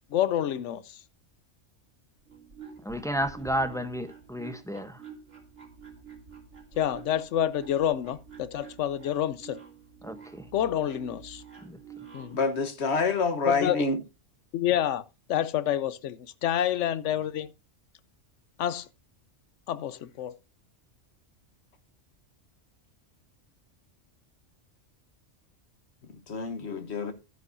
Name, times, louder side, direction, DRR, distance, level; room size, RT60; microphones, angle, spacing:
voice 1, 0.1-0.8 6.8-9.6 10.5-11.4 12.1-12.4 13.5-13.8 14.5-15.0 15.3-17.5 18.6-18.9 19.7-20.3, left 11 dB, 80° left, 1.0 m, -28 dB
sound 1, 2.2-12.4, right 6 dB, 75° right, 3.0 m, -48 dB
voice 2, 2.8-5.0 10.0-10.5 11.6-11.8, equal, 5° left, 0.7 m, -32 dB
voice 3, 12.3-14.0 26.0-27.1, left 4 dB, 65° left, 1.4 m, -27 dB
11.5 x 9.3 x 2.6 m
omnidirectional pair, 1.2 m